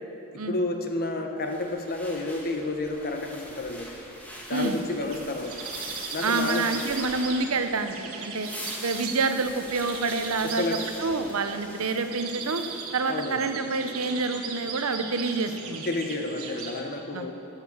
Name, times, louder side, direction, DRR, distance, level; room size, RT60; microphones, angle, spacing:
voice 1, 0.3-3.9 4.5-5.6 6.1-6.9 10.4-10.9 13.1-13.4 15.9-17.4, left 2 dB, 45° left, 4 dB, 1.2 m, -30 dB
sound 1, 1.4-7.8 8.2-12.9, equal, 10° left, 2.1 m, -43 dB
sound 2, 4.5-16.8, right 5 dB, 70° right, 1.4 m, -38 dB
voice 2, 4.5-4.8 6.2-8.5 8.8-10.6 11.0-12.6 12.9-15.8 17.1-17.3, right 3 dB, 85° right, 8 dB, 0.8 m, -27 dB
13.0 x 9.2 x 7.2 m, 2.9 s
head